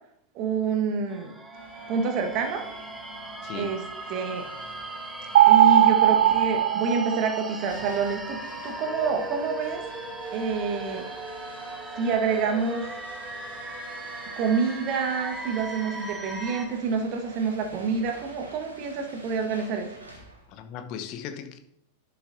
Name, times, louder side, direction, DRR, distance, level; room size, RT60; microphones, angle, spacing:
voice 1, 0.3-1.4 1.9-2.7 3.5-3.8 4.1-4.5 5.5-9.8 10.3-11.1 11.9-12.9 14.3-20.0, right 5 dB, 40° right, 1.5 m, -27 dB
sound 1, 1.1-16.7, right 2 dB, 10° right, 1.0 m, -38 dB
sound 2, 1.5-20.6, right 1 dB, 80° right, 2.0 m, -47 dB
voice 2, 3.4-3.8 20.5-21.6, left 8 dB, 40° left, 1.0 m, -37 dB
sound 3, 5.4-7.8, right 12 dB, 60° right, 0.3 m, -18 dB
11.5 x 6.7 x 2.7 m
figure-of-eight pair, 90°, 0 cm